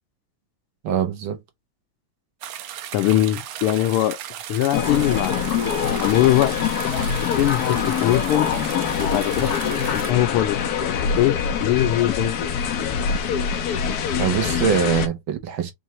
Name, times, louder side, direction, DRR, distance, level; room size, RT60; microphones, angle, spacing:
voice 1, 0.8-1.4 14.2-15.7, right 7 dB, 65° right, 1.5 m, -23 dB
sound 1, 2.4-10.1, right 11 dB, 90° right, 1.6 m, -36 dB
voice 2, 2.9-4.2 4.5-6.5 7.2-8.5 9.0-9.5 9.9-10.6 11.0-12.3, left 14 dB, 85° left, 1.5 m, -21 dB
sound 2, 4.7-15.1, left 7 dB, 65° left, 1.0 m, -24 dB
4.4 x 3.1 x 2.8 m
omnidirectional pair, 2.4 m